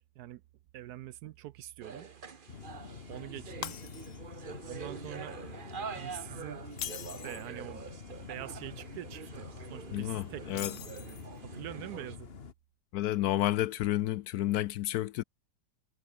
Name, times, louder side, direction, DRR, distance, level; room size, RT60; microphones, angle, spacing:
voice 1, 0.7-2.1 3.1-3.8 4.7-5.4 6.0-6.6 7.2-7.8 8.3-11.1 11.4-12.3, right 14 dB, 70° right, 1.0 m, -44 dB
sound 1, 1.8-12.2, right 5 dB, 35° right, 1.2 m, -46 dB
sound 2, 2.5-12.5, left 5 dB, 35° left, 1.6 m, -47 dB
Shatter, 3.6-4.4 4.8-5.1 6.7-7.5 10.5-11.4, left 9 dB, 55° left, 1.1 m, -42 dB
voice 2, 9.9-10.7 12.9-15.2, left 14 dB, 70° left, 1.0 m, -30 dB
omnidirectional pair, 1.9 m